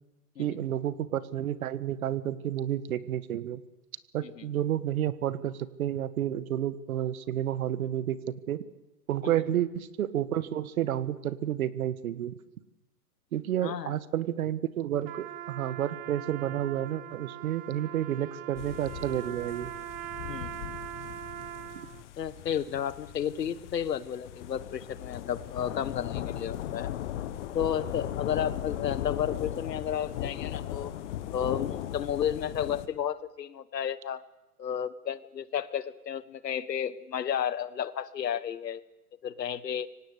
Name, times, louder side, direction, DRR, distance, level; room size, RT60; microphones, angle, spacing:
voice 1, 0.4-3.6 4.1-8.6 9.1-12.3 13.3-19.7, right 11 dB, 60° right, 15 dB, 1.6 m, -30 dB
voice 2, 13.6-13.9 20.3-20.7 22.2-27.0 27.5-30.9 31.3-34.2 34.6-38.8 39.2-39.9, left 9 dB, 85° left, 17 dB, 1.4 m, -32 dB
Trumpet, 15.0-22.0, right 14 dB, 20° right, 0.7 m, -41 dB
sound 1, 18.6-32.9, left 12 dB, 45° left, 1.7 m, -38 dB
25.0 x 18.0 x 8.1 m, 1.0 s
hypercardioid pair, 140°, 48 cm